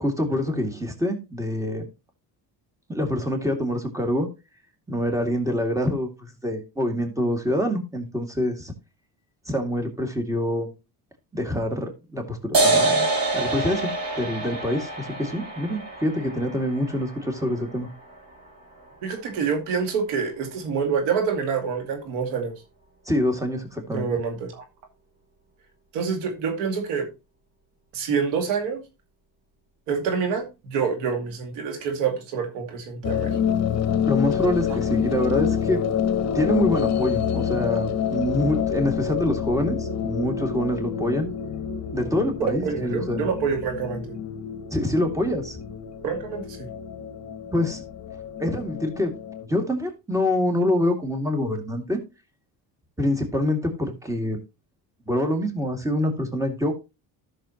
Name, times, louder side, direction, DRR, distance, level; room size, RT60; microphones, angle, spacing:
voice 1, 0.0-1.9 2.9-4.3 4.9-8.7 9.5-10.7 11.3-13.9 14.2-17.9 23.1-24.1 34.1-35.8 36.3-41.3 41.9-43.3 44.7-45.6 47.5-47.8 48.4-49.1 49.5-52.0 53.0-54.4 55.1-56.7, left 1 dB, 10° right, 2.2 m, -25 dB
sound 1, 12.5-19.5, right 2 dB, 60° right, 5.2 m, -27 dB
voice 2, 19.0-22.5 23.9-24.6 25.9-27.1 27.9-28.8 29.9-33.4 42.6-44.0 46.0-46.7, right 6 dB, 85° right, 2.3 m, -27 dB
sound 2, 33.0-49.5, left 8 dB, 40° left, 1.1 m, -27 dB
12.5 x 6.5 x 2.9 m
supercardioid pair, 85°, 42 cm